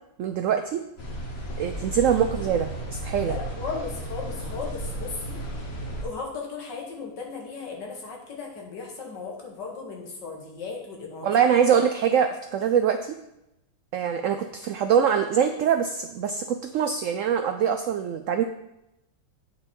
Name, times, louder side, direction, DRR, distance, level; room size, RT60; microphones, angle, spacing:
voice 1, 0.2-0.8 1.6-3.4 11.2-13.2 13.9-18.4, right 8 dB, 85° right, 8 dB, 0.7 m, -23 dB
sound 1, 1.0-6.0, right 1 dB, 40° left, 1.5 m, -34 dB
voice 2, 3.2-5.4 6.0-11.7, left 4 dB, 75° left, 0 dB, 2.1 m, -36 dB
9.1 x 5.2 x 4.4 m, 0.87 s
omnidirectional pair, 1.9 m